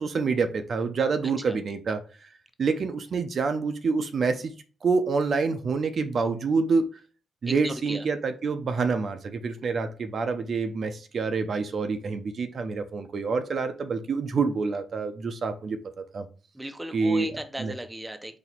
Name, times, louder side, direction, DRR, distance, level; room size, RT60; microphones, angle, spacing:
voice 1, 0.0-2.3 2.6-4.5 4.8-6.9 7.4-15.8 16.1-16.3 16.9-17.3 17.6-17.7, right 4 dB, 55° right, 0.6 m, -27 dB
voice 2, 7.5-8.0 16.5-18.4, right 1 dB, 10° right, 0.6 m, -36 dB
4.2 x 2.9 x 4.3 m
cardioid pair, 90°, 0 cm